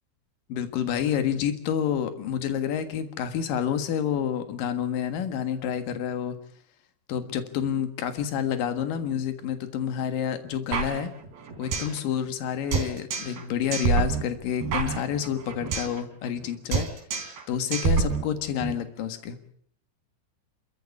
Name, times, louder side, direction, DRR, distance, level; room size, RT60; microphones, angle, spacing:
voice 1, 0.5-6.4 7.1-11.1 11.6-16.9 17.5-19.4, left 9 dB, 60° left, 9 dB, 2.8 m, -29 dB
sound 1, 10.7-12.0 12.3-12.4 12.7-13.4 13.7-16.0 16.2-16.5 16.7-17.4 17.7-18.7, right 5 dB, 55° right, 5.5 m, -27 dB
29.5 x 14.0 x 8.4 m, 0.64 s
omnidirectional pair, 5.4 m